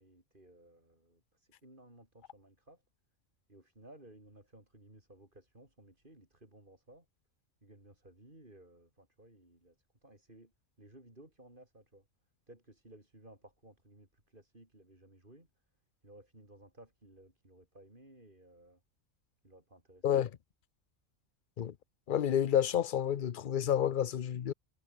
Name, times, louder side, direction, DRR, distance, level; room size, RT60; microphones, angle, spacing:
voice 1, 0.0-2.8 3.5-7.0 7.6-9.8 10.0-10.5 10.8-12.0 12.5-15.5 16.0-18.8 19.4-20.2, right 1 dB, 40° right, 6.4 m, -58 dB
voice 2, 22.1-24.5, left 9 dB, 50° left, 0.7 m, -29 dB
omnidirectional pair, 1.4 m